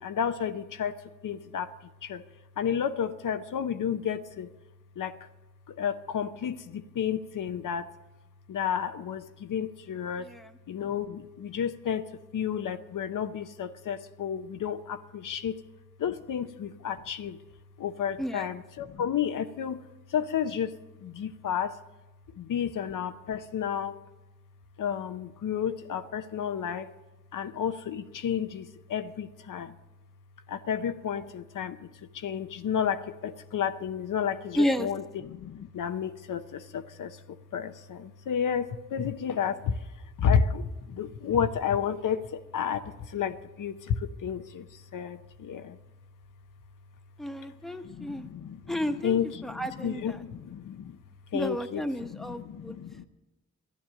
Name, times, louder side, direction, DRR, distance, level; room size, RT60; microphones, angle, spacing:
voice 1, 0.0-1.7 2.0-2.2 2.6-4.5 5.0-5.2 5.7-7.9 8.5-10.3 10.7-15.6 16.0-17.4 17.8-19.8 20.1-21.8 22.3-23.9 24.8-26.9 27.3-29.7 30.5-39.8 40.2-45.8 47.8-51.0 51.3-53.0, left 8 dB, 80° left, 9 dB, 0.7 m, -31 dB
voice 2, 34.6-34.9 47.2-48.3 48.7-50.2 51.3-52.8, equal, ahead, 7 dB, 1.0 m, -31 dB
12.5 x 10.0 x 7.7 m, 1.1 s
cardioid pair, 65°, 31 cm